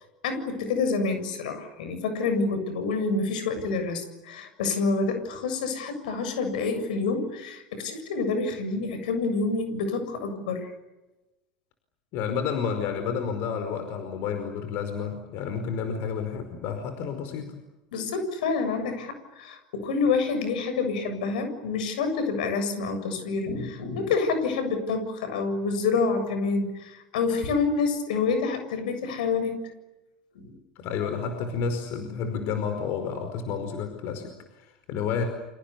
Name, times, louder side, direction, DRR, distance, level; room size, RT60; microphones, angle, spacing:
voice 1, 0.2-10.7 17.9-29.6 30.3-30.6, left 4 dB, 80° left, 8 dB, 7.3 m, -27 dB
voice 2, 12.1-17.6 30.7-35.2, left 6 dB, 60° left, 7 dB, 5.0 m, -30 dB
30.0 x 27.0 x 7.0 m, 1.0 s
hypercardioid pair, 90°, 4 cm